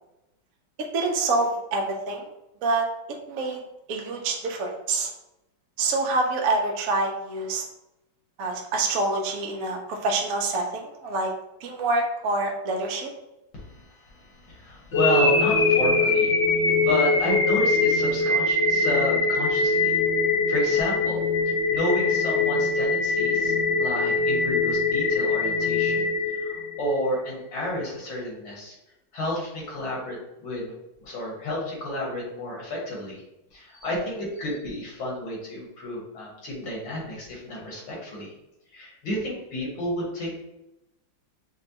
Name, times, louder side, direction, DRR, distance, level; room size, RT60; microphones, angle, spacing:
voice 1, 0.9-2.3 2.6-2.9 3.3-3.6 3.9-5.1 5.8-7.6 8.4-11.3 11.6-13.1, right 3 dB, 65° right, 1 dB, 0.9 m, -26 dB
voice 2, 13.5-16.4 16.8-20.0 20.5-26.1 26.4-28.7 29.1-30.7 31.0-33.2 33.5-38.3 38.7-40.3, left 1 dB, 80° left, -4 dB, 2.2 m, -31 dB
sound 1, 14.9-27.0, left 3 dB, 50° left, 1.0 m, -22 dB
6.2 x 2.2 x 2.8 m, 0.90 s
omnidirectional pair, 2.2 m